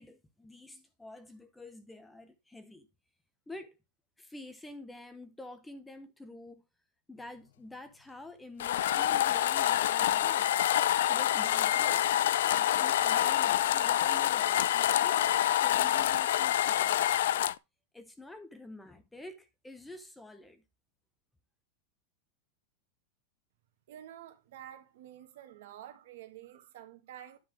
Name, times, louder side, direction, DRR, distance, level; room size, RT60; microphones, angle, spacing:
voice 1, 0.0-2.9 3.5-3.8 4.2-6.6 7.1-10.5 11.1-12.1 12.5-15.2 15.6-17.3 17.9-20.6, left 1 dB, 5° left, 0.7 m, -48 dB
sound 1, 8.6-17.5, left 12 dB, 75° left, 0.4 m, -27 dB
voice 2, 23.9-27.4, right 11 dB, 65° right, 1.6 m, -49 dB
10.0 x 4.0 x 4.8 m
supercardioid pair, 175°, 0 cm